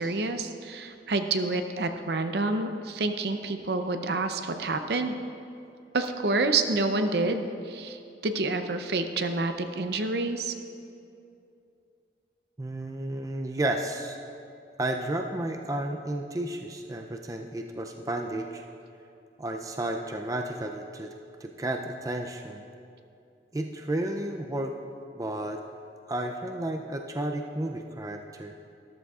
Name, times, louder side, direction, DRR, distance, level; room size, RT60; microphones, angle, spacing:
voice 1, 0.0-5.2 5.9-10.5, right 3 dB, 65° right, 7 dB, 0.6 m, -28 dB
voice 2, 12.6-14.2 14.8-18.7 19.4-21.1 21.4-22.6 23.5-24.7 25.2-25.6 26.1-28.5, right 1 dB, 20° right, 3 dB, 0.4 m, -32 dB
13.5 x 12.5 x 2.4 m, 2.6 s
head